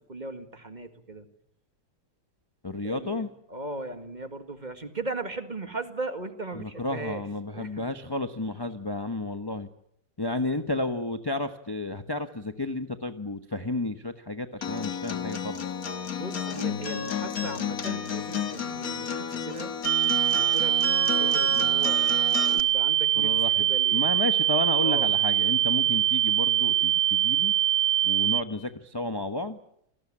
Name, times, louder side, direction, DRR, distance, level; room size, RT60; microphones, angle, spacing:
voice 1, 0.1-1.3 2.8-7.2 7.5-7.9 16.1-19.7 20.3-24.0 24.8-25.1, right 2 dB, 20° right, 8 dB, 1.9 m, -38 dB
voice 2, 2.6-3.3 6.5-9.7 10.2-15.6 23.2-27.5 28.0-29.6, left 2 dB, 20° left, 8 dB, 0.7 m, -32 dB
Acoustic guitar, 14.6-22.6, left 7 dB, 45° left, 1.9 m, -32 dB
sound 1, 19.8-28.4, right 12 dB, 60° right, 2.1 m, -23 dB
28.5 x 19.5 x 8.7 m, 0.74 s
omnidirectional pair, 2.2 m